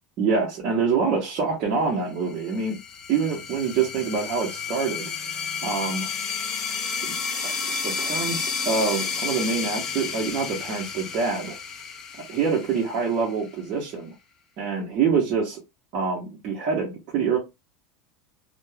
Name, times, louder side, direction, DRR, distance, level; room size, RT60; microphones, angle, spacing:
voice 1, 0.2-2.8 3.1-5.1 5.6-6.1 7.0-7.2 7.4-11.6 12.3-14.1 14.6-15.6 15.9-17.4, right 5 dB, 35° right, -3 dB, 0.6 m, -26 dB
sound 1, 2.3-13.6, left 6 dB, 20° left, 0.4 m, -31 dB
2.2 x 2.0 x 3.1 m, 0.24 s
supercardioid pair, 175°, 2 cm